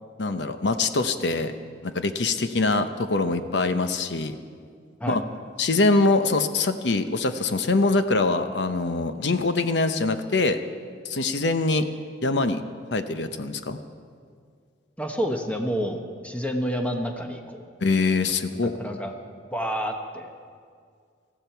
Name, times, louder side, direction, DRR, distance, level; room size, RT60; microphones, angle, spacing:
voice 1, 0.2-1.5 1.8-4.4 5.1-5.2 5.6-10.6 11.0-11.9 12.2-12.6 12.9-13.8 17.8-18.7, left 3 dB, 65° left, 9 dB, 0.8 m, -23 dB
voice 2, 15.0-17.6 18.8-19.1 19.5-20.3, equal, 10° left, 3 dB, 1.2 m, -29 dB
18.5 x 14.5 x 4.6 m, 2.1 s
head